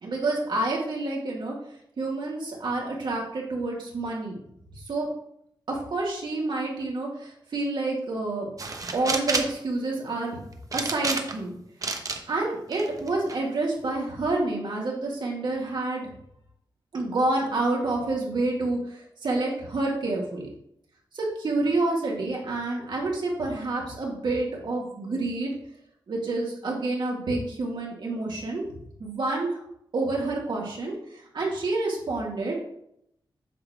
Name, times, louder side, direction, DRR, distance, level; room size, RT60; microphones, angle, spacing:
voice 1, 0.0-1.5 2.0-4.4 4.9-5.1 5.7-8.5 8.9-10.4 10.7-11.6 12.3-16.1 16.9-20.5 21.1-25.5 26.1-28.6 29.0-29.6 29.9-32.5, right 2 dB, 65° right, -2 dB, 2.4 m, -28 dB
sound 1, 8.6-9.6 10.7-11.5 11.8-12.2 12.7-13.4, right 3 dB, 40° right, 1.0 m, -29 dB
8.4 x 3.2 x 6.2 m, 0.73 s
wide cardioid pair, 105°, 9 cm